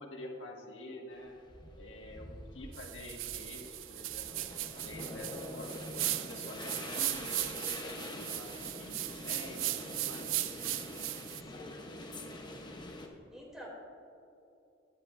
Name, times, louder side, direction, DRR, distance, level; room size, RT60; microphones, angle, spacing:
voice 1, 0.0-1.3 1.7-5.7 6.2-10.5, left 1 dB, 70° left, -1 dB, 1.8 m, -48 dB
sound 1, 1.2-13.1, left 1 dB, 25° left, 0.9 m, -45 dB
sound 2, 2.7-11.4, right 15 dB, 85° right, 0.4 m, -38 dB
voice 2, 5.9-6.4 11.4-11.9 12.9-13.7, equal, 5° right, -4 dB, 2.8 m, -52 dB
16.0 x 10.5 x 2.6 m, 2.7 s
head